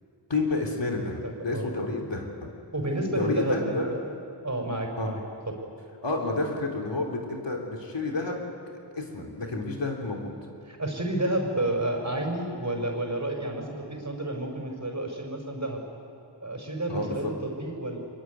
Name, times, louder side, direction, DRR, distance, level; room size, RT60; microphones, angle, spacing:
voice 1, 0.3-2.5 3.2-4.0 5.0-5.1 6.0-8.4 9.0-10.3 16.9-17.2, left 3 dB, 75° left, 0 dB, 3.7 m, -30 dB
voice 2, 1.0-2.0 2.7-4.0 4.4-5.2 5.5-5.6 10.7-15.8 16.4-18.0, right 1 dB, 40° right, 2 dB, 5.2 m, -30 dB
23.5 x 22.0 x 9.5 m, 2.5 s
wide cardioid pair, 55°, 44 cm